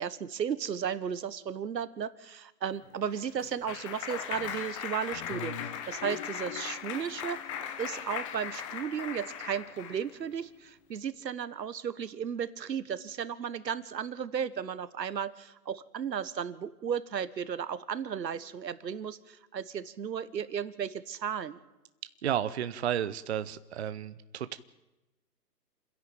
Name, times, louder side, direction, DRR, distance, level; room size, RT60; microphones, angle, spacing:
voice 1, 0.0-7.4 7.8-21.6, right 8 dB, 80° right, 16 dB, 1.4 m, -35 dB
Clapping, 2.8-10.1, left 8 dB, 20° left, 1.0 m, -38 dB
voice 2, 22.2-24.6, right 10 dB, 40° right, 13 dB, 0.7 m, -32 dB
28.0 x 11.0 x 9.1 m, 1.0 s
hypercardioid pair, 155°, 49 cm